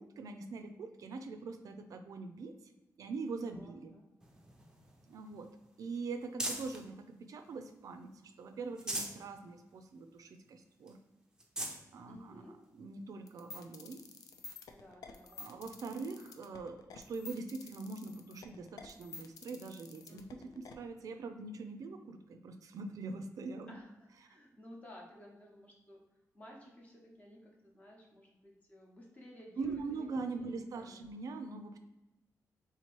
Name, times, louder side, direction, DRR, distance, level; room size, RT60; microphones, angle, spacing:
voice 1, 0.0-2.5 3.0-4.0 5.1-5.5 5.8-11.0 11.9-12.4 12.8-14.0 15.4-23.8 29.6-31.8, right 4 dB, 65° right, 7 dB, 0.4 m, -43 dB
voice 2, 3.5-4.0 12.0-12.6 14.7-15.5 20.1-20.6 23.7-26.0 26.3-29.8 30.3-31.0, left 1 dB, 25° left, -1 dB, 0.8 m, -55 dB
sound 1, 4.2-6.9 7.4-8.2 8.6-9.2 9.7-9.8 10.1-10.2 10.9-11.0 11.3-11.8 12.6-12.7 14.5-14.6, right 1 dB, 10° right, 0.5 m, -42 dB
sound 2, 13.3-20.7, left 4 dB, 75° left, 0.4 m, -50 dB
3.5 x 2.9 x 4.5 m, 0.99 s
wide cardioid pair, 175°, 6 cm